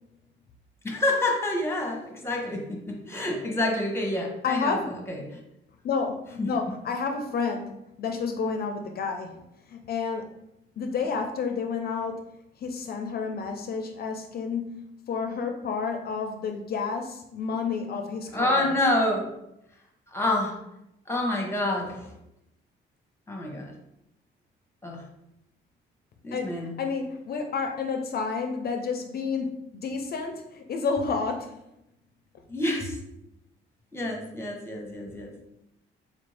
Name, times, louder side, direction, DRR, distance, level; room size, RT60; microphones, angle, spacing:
voice 1, 0.8-5.4 6.4-6.5 18.3-19.3 20.1-20.6 21.1-22.1 23.3-23.7 24.8-25.0 26.2-26.7 32.5-33.0 33.9-35.3, left 1 dB, 10° left, 1 dB, 0.9 m, -28 dB
voice 2, 4.4-4.9 5.8-10.3 10.8-12.2 12.6-18.7 26.3-26.5 26.8-31.6, left 5 dB, 50° left, 4 dB, 0.5 m, -30 dB
4.1 x 2.5 x 3.3 m, 0.84 s
cardioid pair, 90°, 20 cm